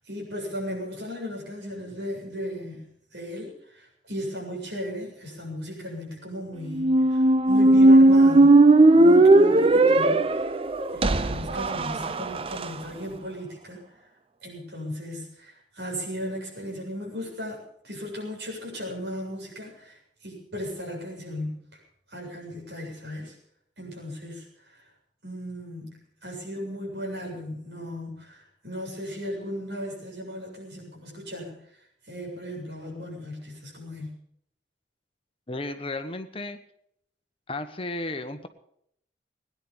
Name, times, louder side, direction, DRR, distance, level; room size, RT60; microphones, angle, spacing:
voice 1, 0.0-8.6 8.9-10.5 10.9-13.8 14.4-20.0 20.2-21.6 22.1-23.3 23.8-24.8 25.2-26.0 26.2-31.6 32.1-34.2, equal, 70° right, -1 dB, 7.5 m, -36 dB
Squeak, 6.7-12.7, right 2 dB, 30° right, 0.6 m, -17 dB
voice 2, 35.5-36.6 37.5-38.5, left 2 dB, 30° left, 8 dB, 1.2 m, -33 dB
18.0 x 10.5 x 7.3 m, 0.71 s
head